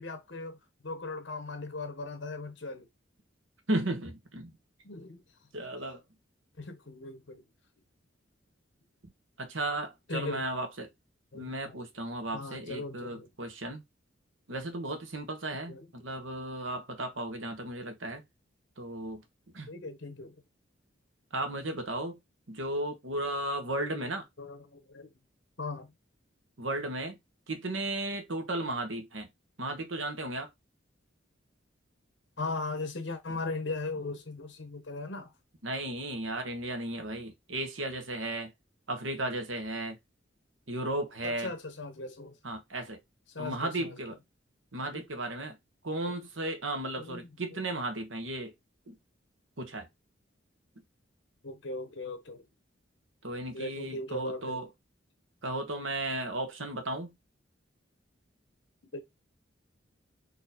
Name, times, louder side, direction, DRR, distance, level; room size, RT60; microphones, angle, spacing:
voice 1, 0.0-2.9 4.8-5.2 6.6-7.4 10.1-10.4 11.3-11.8 12.3-13.3 15.7-15.9 19.7-20.4 23.8-24.1 24.4-25.1 25.6-25.9 32.4-35.3 41.2-42.4 43.3-44.0 44.9-45.0 47.0-47.2 51.4-52.4 53.5-54.6 58.9-59.0, left 3 dB, 65° left, 1.1 m, -38 dB
voice 2, 3.7-4.5 5.5-6.0 9.4-10.9 11.3-13.8 14.5-18.2 18.8-19.2 19.5-19.7 21.3-22.2 22.5-24.3 26.6-27.2 27.5-29.3 29.6-30.5 33.3-33.4 35.6-38.5 38.9-40.0 40.7-41.5 42.4-43.0 43.4-44.1 44.7-45.6 45.8-48.5 48.9-49.0 49.6-49.9 53.2-54.7 55.4-57.1, right 1 dB, 80° right, 1.3 m, -35 dB
4.1 x 2.9 x 4.1 m
head